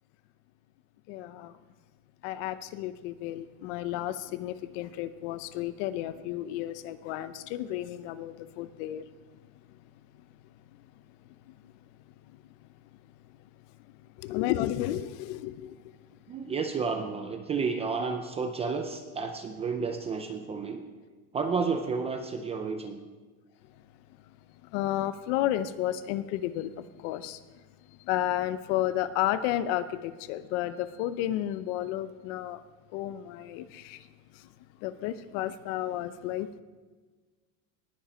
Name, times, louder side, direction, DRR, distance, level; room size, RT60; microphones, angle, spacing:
voice 1, 1.1-1.5 2.2-9.1 10.8-10.9 11.5-11.7 12.3-12.4 13.9-15.8 24.3-24.4 24.6-27.4 27.9-32.6 32.9-34.1 34.3-34.5 34.8-36.6, left 13 dB, 55° left, 0.7 m, -32 dB
voice 2, 16.3-20.8 21.3-23.0, right 5 dB, 15° right, 0.4 m, -31 dB
19.0 x 7.1 x 5.1 m
cardioid pair, 165°, 42 cm